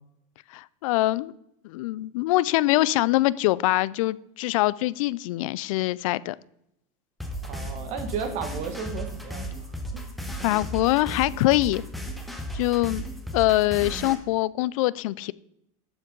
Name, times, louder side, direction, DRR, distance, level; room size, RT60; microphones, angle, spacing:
voice 1, 0.5-1.3 1.6-6.4 10.4-11.8 12.5-13.0 13.3-15.3, left 17 dB, 75° left, 20 dB, 0.4 m, -24 dB
sound 1, 7.2-14.1, equal, ahead, 1.0 m, -35 dB
voice 2, 7.4-10.0, right 6 dB, 40° right, 7 dB, 1.7 m, -34 dB
12.0 x 7.2 x 3.8 m, 0.79 s
supercardioid pair, 165°, 18 cm